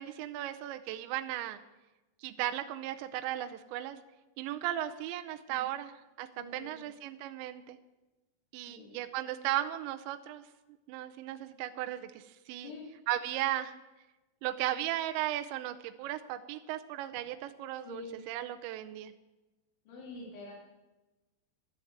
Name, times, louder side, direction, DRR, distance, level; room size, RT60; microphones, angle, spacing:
voice 1, 0.0-1.6 2.2-4.0 4.4-5.9 6.2-7.8 8.5-10.4 10.9-12.7 13.1-13.7 14.4-19.1, right 13 dB, 80° right, 8 dB, 2.9 m, -36 dB
voice 2, 5.5-5.8 6.4-6.9 8.7-9.0 12.5-12.9 17.7-18.2 19.9-20.5, left 3 dB, 85° left, -2 dB, 5.1 m, -46 dB
12.0 x 10.5 x 7.9 m, 1.1 s
omnidirectional pair, 5.2 m